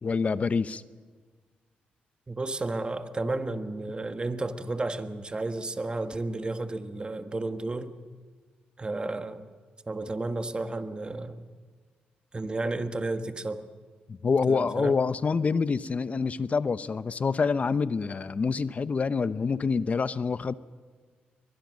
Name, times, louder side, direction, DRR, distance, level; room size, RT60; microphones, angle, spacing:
voice 1, 0.0-0.8 14.1-20.5, left 5 dB, 40° left, 16 dB, 0.8 m, -26 dB
voice 2, 2.3-7.9 8.8-9.4 9.9-11.4 12.3-13.6 14.5-15.0, right 2 dB, 25° right, 9 dB, 1.5 m, -32 dB
22.5 x 20.0 x 6.4 m, 1.5 s
cardioid pair, 65°, 3 cm